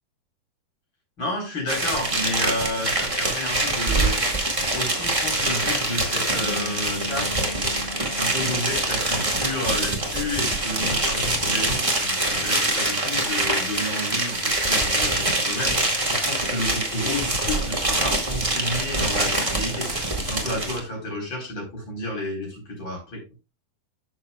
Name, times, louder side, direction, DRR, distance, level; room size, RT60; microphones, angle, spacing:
voice 1, 1.2-4.2 4.7-7.5 8.1-23.2, left 1 dB, 30° left, -1 dB, 4.5 m, -31 dB
sound 1, 1.7-20.8, right 2 dB, 15° right, 1.1 m, -24 dB
Bass guitar, 6.4-12.6, left 2 dB, 15° left, 2.5 m, -40 dB
12.5 x 6.6 x 2.3 m, 0.26 s
omnidirectional pair, 4.2 m